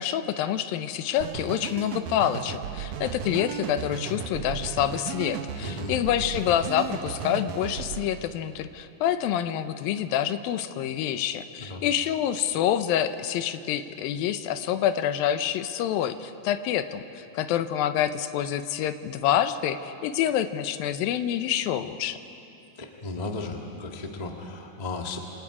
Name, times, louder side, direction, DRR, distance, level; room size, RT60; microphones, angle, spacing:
voice 1, 0.0-22.2, left 10 dB, 85° left, 11 dB, 2.5 m, -27 dB
sound 1, 1.2-8.1, right 8 dB, 70° right, 2.3 m, -35 dB
voice 2, 5.6-5.9 11.6-11.8 22.8-25.2, left 3 dB, 40° left, 1 dB, 0.5 m, -35 dB
27.5 x 27.0 x 4.9 m, 2.8 s
omnidirectional pair, 4.1 m